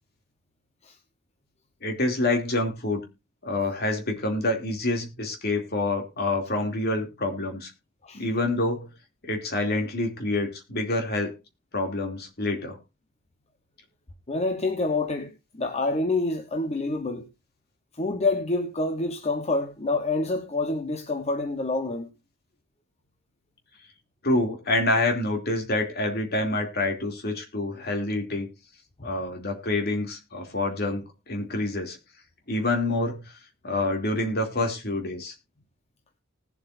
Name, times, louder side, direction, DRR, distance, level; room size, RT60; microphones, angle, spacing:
voice 1, 1.8-3.0 3.4-7.7 8.1-8.9 9.2-11.3 11.7-12.8 24.2-28.5 29.0-32.0 32.5-33.3 33.6-35.3, left 2 dB, 55° left, 2.8 m, -27 dB
voice 2, 14.3-17.3 18.0-22.1 29.0-29.1, left 2 dB, 35° left, 1.1 m, -27 dB
19.5 x 7.8 x 2.6 m
head